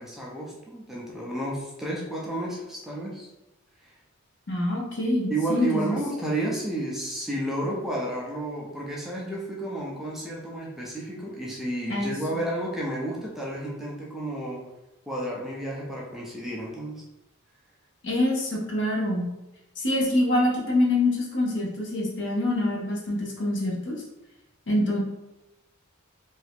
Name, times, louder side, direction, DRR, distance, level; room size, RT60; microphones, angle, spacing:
voice 1, 0.0-3.3 3.8-4.0 5.3-14.7 15.1-17.0, right 1 dB, ahead, -4 dB, 0.4 m, -31 dB
voice 2, 4.5-6.0 11.9-12.1 18.0-19.3 19.8-23.9 24.7-25.0, left 1 dB, 60° left, -2 dB, 0.8 m, -25 dB
2.7 x 2.4 x 3.4 m, 0.95 s
head